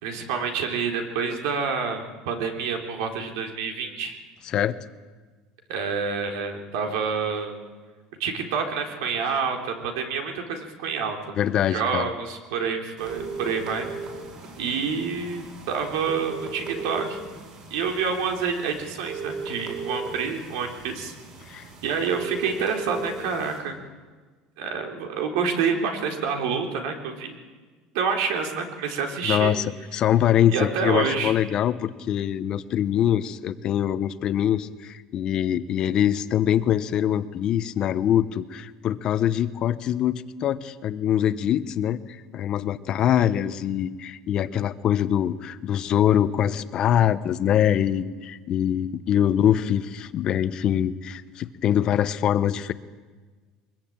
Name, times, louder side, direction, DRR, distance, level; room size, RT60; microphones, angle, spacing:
voice 1, 0.0-4.2 5.7-7.6 8.2-11.2 11.7-13.9 14.6-17.2 17.7-21.1 21.8-23.8 24.6-27.3 27.9-29.6 30.5-31.3, right 5 dB, 90° right, 3 dB, 4.0 m, -28 dB
voice 2, 4.5-4.8 11.4-12.1 21.5-21.7 29.2-42.0 42.3-52.7, left 10 dB, 40° left, 13 dB, 0.9 m, -23 dB
sound 1, 13.0-23.6, right 4 dB, 45° right, 7.7 m, -37 dB
23.0 x 21.5 x 8.9 m, 1.4 s
cardioid pair, 160°, 2 cm